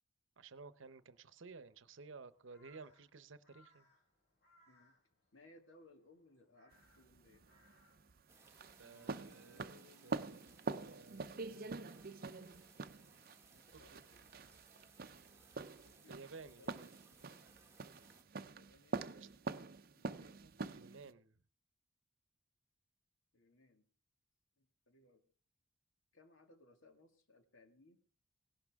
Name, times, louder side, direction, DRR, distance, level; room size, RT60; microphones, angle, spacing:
voice 1, 0.4-3.9 8.8-9.7 10.0-12.9 13.9-14.0 16.0-16.9 19.2-19.3 20.4-21.4, right 4 dB, 80° right, 15 dB, 0.8 m, -56 dB
Crow, 0.5-9.0, left 1 dB, 55° left, 6.2 m, -73 dB
voice 2, 5.3-7.5 8.8-10.6 13.5-14.4 15.8-17.5 18.5-19.1 19.9-20.5 23.3-23.9 24.6-25.3 26.1-28.0, left 2 dB, 90° left, 5 dB, 2.1 m, -65 dB
sound 1, 6.7-21.1, right 3 dB, 50° right, 0.6 m, -45 dB
sound 2, 8.3-18.2, right 4 dB, 15° right, 1.7 m, -65 dB
17.5 x 11.5 x 3.5 m, 0.39 s
head